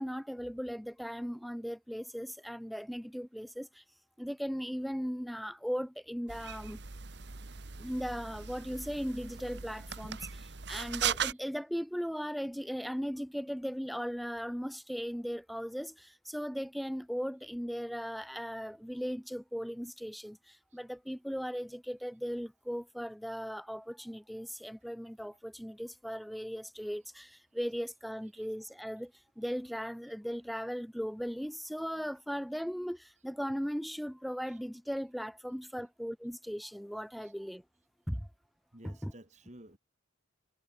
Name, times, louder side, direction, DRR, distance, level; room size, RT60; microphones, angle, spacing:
voice 1, 0.0-3.8 4.2-6.8 7.8-37.6 38.1-38.3 38.8-39.1, equal, ahead, 0.3 m, -38 dB
sound 1, 6.3-11.3, right 8 dB, 60° right, 1.3 m, -38 dB
voice 2, 38.7-39.8, right 1 dB, 35° right, 2.9 m, -54 dB
head